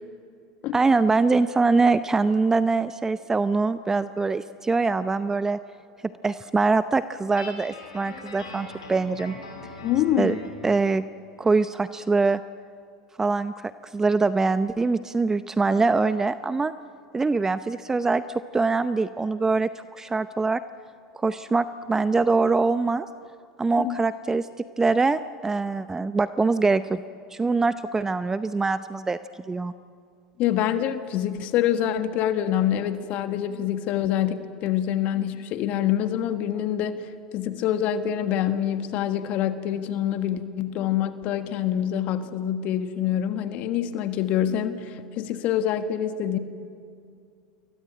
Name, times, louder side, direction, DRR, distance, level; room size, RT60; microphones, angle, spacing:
voice 1, 0.7-5.6 6.2-9.3 10.2-10.3 10.6-11.0 11.4-12.4 13.2-16.7 17.1-20.6 21.1-23.1 23.6-24.5 24.8-27.0 27.3-29.2 29.5-29.7, right 3 dB, 15° right, 13 dB, 0.7 m, -23 dB
Guitar, 7.4-10.6, left 2 dB, 85° left, 7.7 m, -41 dB
voice 2, 9.8-10.4 23.8-24.0 30.4-46.4, left 10 dB, 50° left, 9 dB, 1.5 m, -26 dB
28.5 x 22.5 x 8.9 m, 2.4 s
hypercardioid pair, 80°, 3 cm